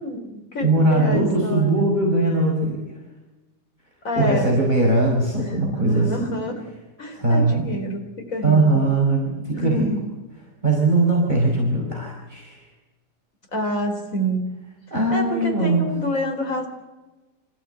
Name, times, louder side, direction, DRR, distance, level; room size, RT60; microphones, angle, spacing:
voice 1, 0.0-1.8 4.0-4.6 5.5-6.5 7.0-8.9 9.6-10.1 13.5-14.5 15.1-16.7, equal, 50° left, 3 dB, 4.5 m, -27 dB
voice 2, 0.6-2.8 4.1-6.1 7.1-7.7 8.4-9.8 10.6-12.6 14.9-15.9, right 2 dB, 25° right, -2 dB, 5.1 m, -20 dB
26.0 x 16.0 x 9.0 m, 1.1 s
omnidirectional pair, 1.8 m